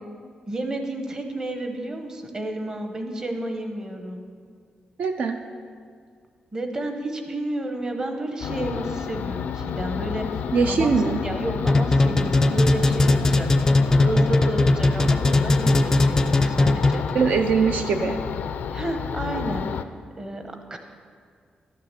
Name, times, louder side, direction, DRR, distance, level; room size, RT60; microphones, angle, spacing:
voice 1, 0.5-4.2 6.5-10.3 10.7-10.9 11.2-13.5 14.0-17.0 18.7-19.6 20.2-20.8, right 1 dB, 25° right, 4 dB, 1.0 m, -31 dB
voice 2, 5.0-5.4 10.5-11.2 17.1-18.2, right 5 dB, 65° right, 5 dB, 0.5 m, -21 dB
sound 1, 8.4-19.8, left 7 dB, 80° left, 0.4 m, -30 dB
sound 2, 11.7-17.2, left 2 dB, 20° left, 0.4 m, -19 dB
12.0 x 6.6 x 6.7 m, 2.1 s
wide cardioid pair, 165°, 3 cm